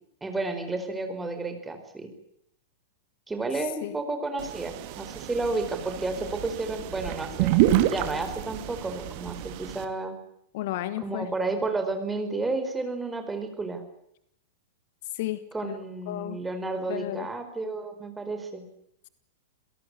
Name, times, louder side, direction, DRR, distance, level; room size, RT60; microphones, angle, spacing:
voice 1, 0.2-2.1 3.3-7.5 7.9-10.1 11.0-13.8 15.5-18.6, right 3 dB, 10° right, 6 dB, 4.7 m, -31 dB
voice 2, 3.5-3.9 10.5-11.3 15.1-15.8 16.1-16.4 16.9-17.3, left 14 dB, 50° left, 15 dB, 1.5 m, -33 dB
sound 1, 4.4-9.8, right 13 dB, 45° right, 2.4 m, -28 dB
27.5 x 17.5 x 9.8 m, 0.76 s
figure-of-eight pair, 100°, 0 cm